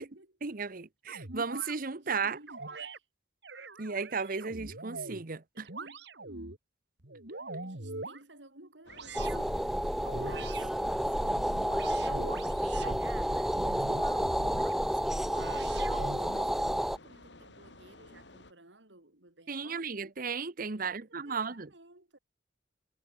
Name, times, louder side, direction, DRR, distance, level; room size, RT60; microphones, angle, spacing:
voice 1, 0.4-2.4 3.8-5.7 19.5-21.7, right 5 dB, 50° right, 1.1 m, -35 dB
sound 1, 1.1-1.8 2.5-3.0 3.4-5.2 5.7-6.6 7.0-8.2 8.9-9.5 10.0-10.7 11.1-13.0 13.5-14.7 15.3-16.5, right 3 dB, 65° right, 2.6 m, -42 dB
voice 2, 2.0-2.5 2.8-3.1 5.5-6.1 7.6-20.0 20.8-22.2, right 3 dB, 85° right, 5.4 m, -56 dB
sound 2, 8.9-18.5, left 2 dB, 75° left, 3.9 m, -54 dB
sound 3, 9.1-17.0, equal, ahead, 0.5 m, -30 dB
head